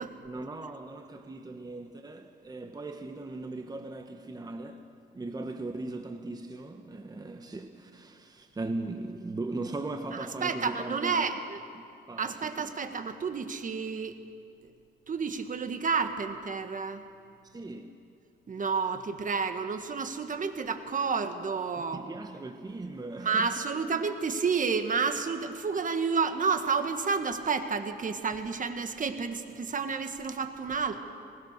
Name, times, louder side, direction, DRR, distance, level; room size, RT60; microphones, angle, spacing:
voice 1, 0.2-11.3 12.1-12.8 17.4-18.0 21.8-23.8, right 2 dB, 20° right, 1.2 m, -39 dB
voice 2, 10.1-11.6 12.2-14.1 15.1-17.0 18.5-22.1 23.2-31.0, right 5 dB, 40° right, 1.5 m, -30 dB
21.0 x 20.0 x 6.6 m
cardioid pair, 90°, 20 cm